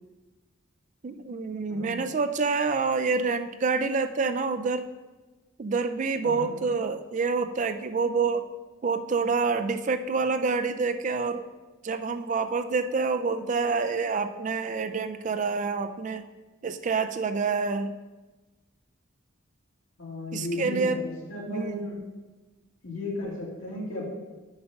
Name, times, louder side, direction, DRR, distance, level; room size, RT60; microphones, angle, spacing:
voice 1, 1.0-4.9 5.6-8.5 8.8-11.4 11.8-16.2 16.6-17.9 20.3-21.0 21.5-21.9, right 4 dB, 35° right, 9 dB, 0.3 m, -27 dB
voice 2, 6.2-6.5 20.0-22.0 22.8-24.1, left 2 dB, 70° left, -4 dB, 2.6 m, -34 dB
7.9 x 5.2 x 5.8 m, 1.2 s
head